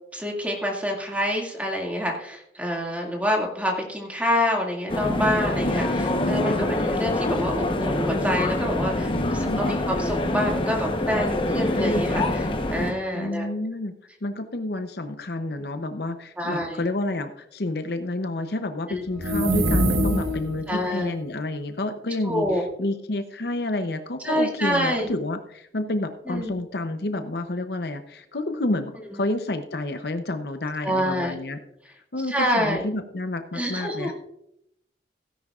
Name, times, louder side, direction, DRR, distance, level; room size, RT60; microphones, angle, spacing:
voice 1, 0.1-13.5 16.4-16.8 18.9-19.0 20.7-21.1 22.2-22.6 24.2-25.1 26.3-26.6 29.1-29.2 30.8-31.3 32.3-32.9 33.5-34.1, equal, 10° right, -1 dB, 2.1 m, -27 dB
sound 1, 4.9-12.9, left 1 dB, 30° left, 1.0 m, -25 dB
voice 2, 5.6-6.7 9.1-9.9 13.1-13.9 14.2-31.6 32.1-34.1, left 2 dB, 60° left, 8 dB, 0.7 m, -29 dB
sound 2, 19.1-20.7, right 1 dB, 70° right, 1.2 m, -23 dB
17.0 x 10.0 x 2.4 m, 0.79 s
head